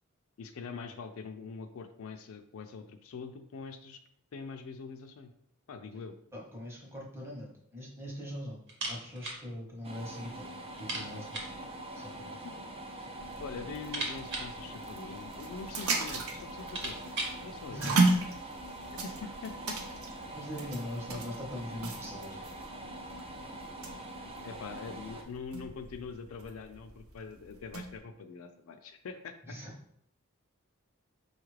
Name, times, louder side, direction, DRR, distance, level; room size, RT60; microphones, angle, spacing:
voice 1, 0.4-4.0 4.3-5.3 5.7-6.1 12.4-12.5 13.2-17.1 17.4-17.8 18.9-19.8 24.4-29.6, left 5 dB, 70° left, 7 dB, 0.4 m, -44 dB
voice 2, 6.3-8.6 8.9-11.4 11.9-12.5 17.7-18.2 20.3-22.4 29.4-29.7, equal, 10° right, -2 dB, 0.8 m, -41 dB
sound 1, 8.7-9.4 9.7-9.8 10.2-10.3 10.7-11.6 12.6-13.1 13.5-15.5 16.1-16.2 16.5-17.4, right 2 dB, 55° right, 1.0 m, -39 dB
sound 2, 9.8-25.2, right 1 dB, 25° right, 0.4 m, -44 dB
sound 3, 13.1-28.0, right 3 dB, 75° right, 0.6 m, -36 dB
5.0 x 2.4 x 3.2 m, 0.71 s
head